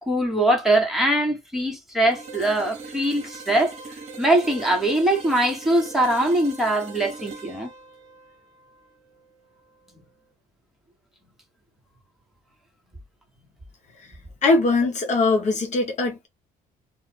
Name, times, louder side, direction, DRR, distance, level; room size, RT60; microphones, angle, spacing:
voice 1, 0.0-3.7 4.2-7.7, right 1 dB, ahead, 1.3 m, -22 dB
sound 1, 2.1-9.9, right 4 dB, 40° right, 1.2 m, -41 dB
voice 2, 14.4-16.3, left 3 dB, 45° left, 0.8 m, -21 dB
2.5 x 2.4 x 3.4 m
cardioid pair, 110°, 17 cm